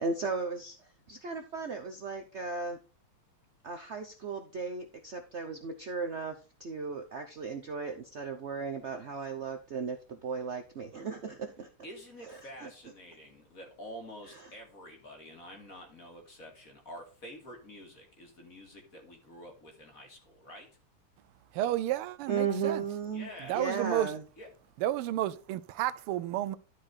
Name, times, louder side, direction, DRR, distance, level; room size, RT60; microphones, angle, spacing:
voice 1, 0.0-2.8 3.6-6.3 6.6-11.7 12.2-12.7 14.3-14.4 22.3-23.3 23.5-24.2, right 5 dB, 70° right, 0.6 m, -36 dB
voice 2, 11.8-20.7 23.1-23.6 24.4-24.5, equal, 40° left, 2.6 m, -48 dB
voice 3, 21.5-22.8 23.5-24.1 24.8-26.6, right 13 dB, 90° right, 1.6 m, -31 dB
12.0 x 4.9 x 4.2 m
omnidirectional pair, 2.4 m